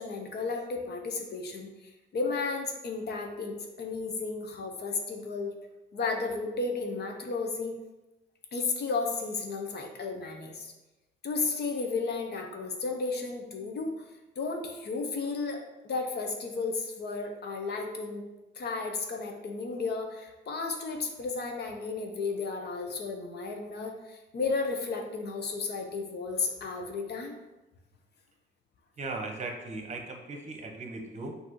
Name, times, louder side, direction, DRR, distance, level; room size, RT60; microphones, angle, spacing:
voice 1, 0.0-1.7 2.1-5.5 5.9-7.8 8.5-10.7 11.2-14.0 14.4-18.2 18.6-27.4, left 4 dB, 55° left, 3 dB, 0.7 m, -33 dB
voice 2, 29.0-31.4, right 3 dB, 35° right, 3 dB, 0.8 m, -38 dB
5.8 x 2.7 x 3.0 m, 1.0 s
cardioid pair, 90°, 20 cm